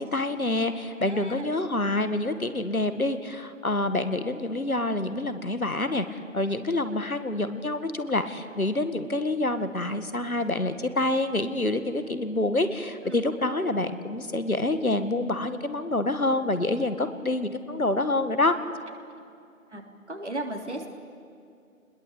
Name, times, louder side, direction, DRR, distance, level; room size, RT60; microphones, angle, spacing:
voice 1, 0.0-18.5, left 2 dB, 80° left, 10 dB, 2.0 m, -27 dB
voice 2, 1.0-1.5 13.0-13.2 19.7-19.8 20.1-20.9, right 1 dB, 50° right, 2 dB, 3.5 m, -35 dB
27.5 x 21.0 x 8.4 m, 2.4 s
figure-of-eight pair, 165°, 43 cm